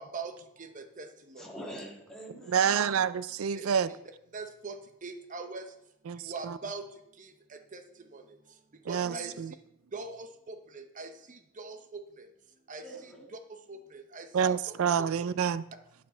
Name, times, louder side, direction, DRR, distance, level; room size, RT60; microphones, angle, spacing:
voice 1, 0.0-1.5 3.5-4.0 4.3-5.8 6.1-9.3 9.9-12.3 12.7-14.5 15.0-15.3, right 3 dB, 40° right, 0.9 m, -43 dB
voice 2, 1.4-2.7 9.0-9.4 12.8-13.3, right 1 dB, 5° left, 1.9 m, -45 dB
voice 3, 2.5-3.9 6.1-6.6 8.9-9.5 14.3-15.6, right 7 dB, 90° right, 0.4 m, -28 dB
9.7 x 8.3 x 4.4 m
head